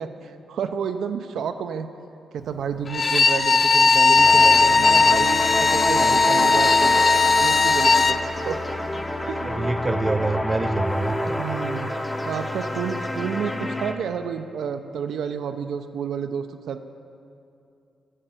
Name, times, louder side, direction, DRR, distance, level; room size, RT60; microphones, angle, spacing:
voice 1, 0.0-1.9 2.3-8.6 9.3-9.5 11.4-11.9 12.3-16.9, right 7 dB, 80° right, 7 dB, 0.5 m, -30 dB
Bowed string instrument, 2.9-8.2, left 4 dB, 40° left, 0.4 m, -17 dB
sound 1, 4.2-13.9, left 1 dB, 15° left, 0.8 m, -28 dB
voice 2, 9.4-11.4, right 2 dB, 25° right, 10 dB, 0.6 m, -26 dB
11.0 x 6.6 x 7.4 m, 2.6 s
cardioid pair, 95°, 0 cm